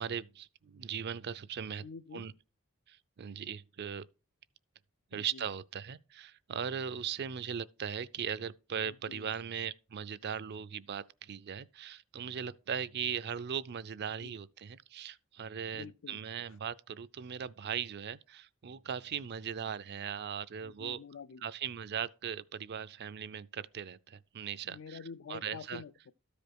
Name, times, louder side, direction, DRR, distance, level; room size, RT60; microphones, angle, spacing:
voice 1, 0.0-1.8 2.1-2.3 2.9-4.1 5.1-21.0 21.4-25.0 25.3-25.8, right 8 dB, 50° right, 0.5 m, -39 dB
voice 2, 1.8-2.3 5.1-5.5 8.8-9.2 14.2-14.4 15.7-16.2 20.6-21.4 24.6-26.1, left 5 dB, 65° left, 0.4 m, -47 dB
13.0 x 5.1 x 4.6 m
head